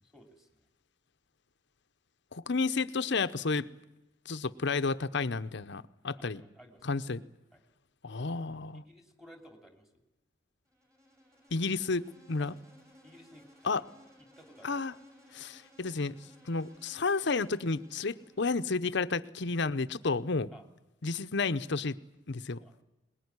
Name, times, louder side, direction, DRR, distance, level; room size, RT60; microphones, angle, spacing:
voice 1, 0.0-0.7 6.1-7.0 7.5-7.6 8.7-10.0 12.4-12.5 13.0-13.9 14.2-14.8 20.5-20.6 22.6-22.7, equal, ahead, 5 dB, 2.9 m, -56 dB
voice 2, 2.3-3.7 4.3-6.4 6.8-7.2 8.0-8.8 11.5-12.0 12.3-12.6 13.6-13.8 14.6-14.9 15.3-16.2 16.4-20.5 21.0-22.0 22.3-22.6, left 4 dB, 65° left, 12 dB, 0.8 m, -31 dB
Insect, 10.7-18.9, equal, 15° right, 6.9 m, -59 dB
22.0 x 20.0 x 9.7 m, 0.93 s
head